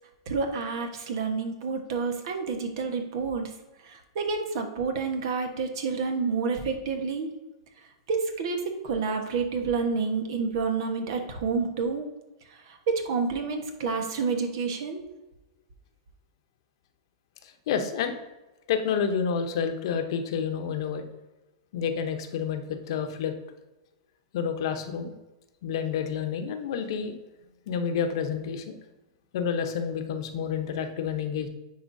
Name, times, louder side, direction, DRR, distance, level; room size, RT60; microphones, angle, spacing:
voice 1, 0.3-3.5 3.8-7.3 8.1-12.1 12.5-15.0, right 4 dB, 65° right, 5 dB, 1.2 m, -29 dB
voice 2, 17.4-18.2 18.7-21.0 21.7-23.3 24.3-25.1 25.6-27.1 27.7-28.8 29.3-31.5, left 7 dB, 65° left, 7 dB, 0.9 m, -29 dB
9.6 x 4.4 x 2.7 m, 1.0 s
hypercardioid pair, 120°, 3 cm